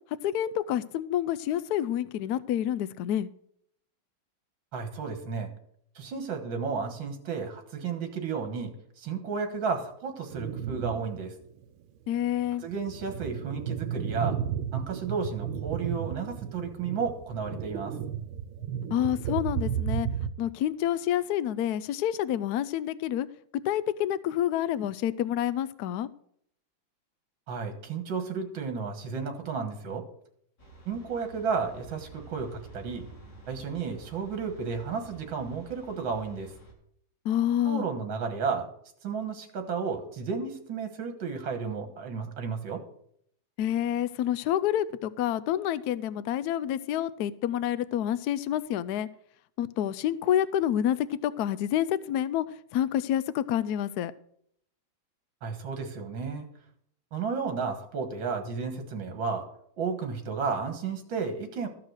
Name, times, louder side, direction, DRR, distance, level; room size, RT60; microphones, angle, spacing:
voice 1, 0.2-3.3 12.1-12.6 18.9-20.1 20.4-23.3 23.7-26.1 37.2-37.8 43.6-49.1 49.6-52.4 52.7-54.1, left 11 dB, 75° left, 15 dB, 0.9 m, -28 dB
voice 2, 4.7-5.5 6.0-8.7 9.0-11.3 12.6-14.4 14.7-17.9 27.5-30.0 30.9-33.1 33.5-36.5 37.6-38.7 39.0-42.8 55.4-56.5 57.1-59.5 59.8-61.7, right 5 dB, 70° right, 6 dB, 2.3 m, -32 dB
sound 1, 10.3-11.2 11.6-11.7 12.4-20.3, right 9 dB, 85° right, 1.6 m, -33 dB
sound 2, 30.6-36.7, right 3 dB, 40° left, 2.2 m, -50 dB
14.0 x 6.0 x 6.3 m, 0.68 s
omnidirectional pair, 2.2 m